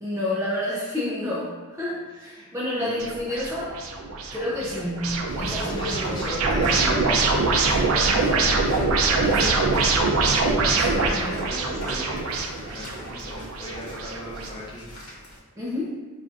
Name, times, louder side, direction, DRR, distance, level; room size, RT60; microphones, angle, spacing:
voice 1, 0.0-3.7 4.3-6.2 9.3-9.6 10.8-11.3 15.6-16.0, left 1 dB, 15° right, -8 dB, 0.4 m, -30 dB
voice 2, 2.2-3.1 5.7-9.0 9.3-10.2 10.9-12.3 12.6-14.9, equal, 20° left, -6 dB, 0.8 m, -37 dB
sound 1, 3.0-14.5, right 3 dB, 70° right, 0.4 m, -24 dB
sound 2, 5.3-15.4, equal, 90° left, 1.0 m, -40 dB
4.8 x 2.5 x 2.4 m, 1.5 s
head